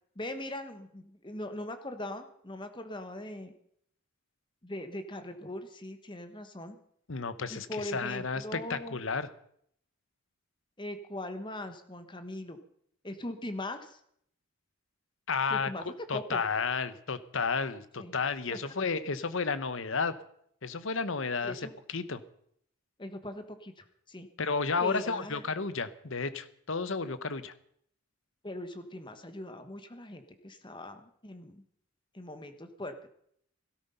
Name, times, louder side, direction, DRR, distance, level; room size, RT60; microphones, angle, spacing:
voice 1, 0.1-3.5 4.6-6.8 7.5-9.0 10.8-12.6 13.0-14.0 15.5-15.8 16.1-16.4 18.0-18.1 18.5-18.7 21.4-21.7 23.0-24.3 24.8-25.4 28.4-31.6 32.1-33.1, left 1 dB, 20° left, 8 dB, 1.2 m, -40 dB
voice 2, 7.1-9.3 15.3-15.7 16.1-20.1 20.6-22.2 24.4-27.5, left 4 dB, 60° left, 13 dB, 1.0 m, -32 dB
17.0 x 13.0 x 5.6 m, 0.68 s
head